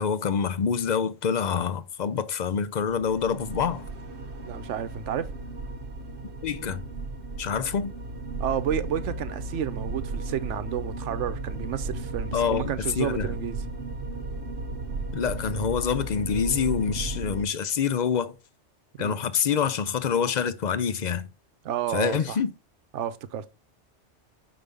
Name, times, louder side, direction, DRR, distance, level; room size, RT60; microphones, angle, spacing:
voice 1, 0.0-3.8 6.4-6.8 7.4-7.9 12.3-13.3 15.1-18.4 19.0-21.3 21.9-22.5, left 7 dB, 50° left, 0.6 m, -26 dB
sound 1, 2.9-17.5, right 2 dB, 55° right, 0.9 m, -35 dB
voice 2, 4.4-5.3 8.4-13.6 19.0-19.2 21.6-22.4 22.9-23.5, right 9 dB, 85° right, 1.0 m, -31 dB
5.8 x 5.4 x 3.4 m
omnidirectional pair, 1.2 m